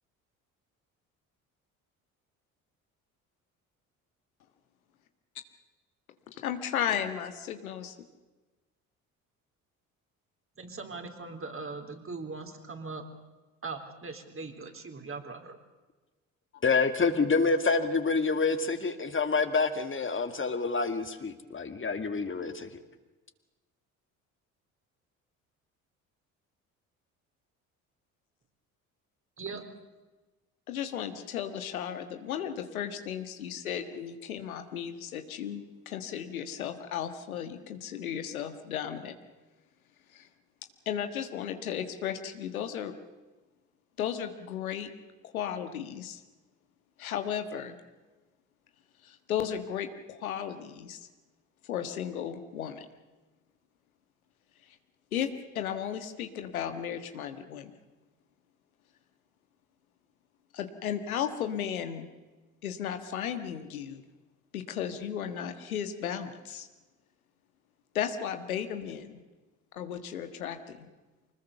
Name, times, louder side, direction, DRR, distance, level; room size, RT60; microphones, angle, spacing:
voice 1, 6.3-7.9 30.7-39.1 40.1-40.3 40.8-42.9 44.0-44.9 45.2-46.2 47.0-47.8 49.0-51.0 51.6-52.8 55.1-57.7 60.5-62.1 62.6-64.0 64.5-66.7 67.9-69.2 69.7-70.9, left 9 dB, 85° left, 1.5 m, -35 dB
voice 2, 10.6-13.1 13.6-15.6 29.4-29.6, right 4 dB, 30° right, 3.9 m, -40 dB
voice 3, 16.6-22.7, left 4 dB, 30° left, 2.3 m, -27 dB
25.0 x 20.5 x 6.8 m
hypercardioid pair, 55°, 41 cm